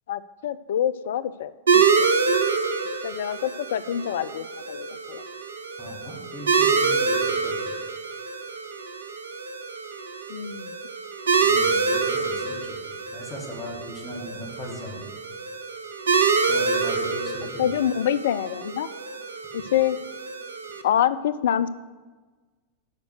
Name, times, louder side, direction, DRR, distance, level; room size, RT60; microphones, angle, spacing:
voice 1, 0.1-2.1 3.0-5.3 10.3-10.7 17.6-18.9 19.5-20.0 20.8-21.7, left 10 dB, 60° left, 15 dB, 0.3 m, -26 dB
sound 1, 1.7-20.8, right 5 dB, 70° right, 0.6 m, -26 dB
voice 2, 5.8-7.5 11.4-15.0 16.5-17.7, left 1 dB, 15° left, -2 dB, 2.1 m, -38 dB
9.6 x 5.0 x 6.4 m, 1.3 s
figure-of-eight pair, 90°, 0 cm